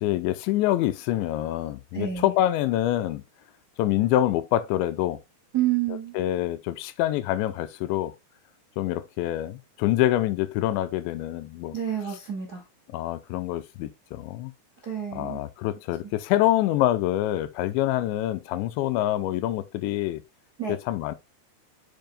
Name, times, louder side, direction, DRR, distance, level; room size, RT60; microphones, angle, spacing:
voice 1, 0.0-3.2 3.8-5.2 6.1-8.1 8.8-11.8 12.9-14.5 15.1-20.2 20.7-21.2, left 14 dB, 90° left, 2.9 m, -26 dB
voice 2, 1.9-2.3 5.5-6.1 11.7-12.6 14.8-15.4 20.6-20.7, right 11 dB, 55° right, 1.0 m, -28 dB
7.6 x 7.1 x 2.2 m
omnidirectional pair, 5.2 m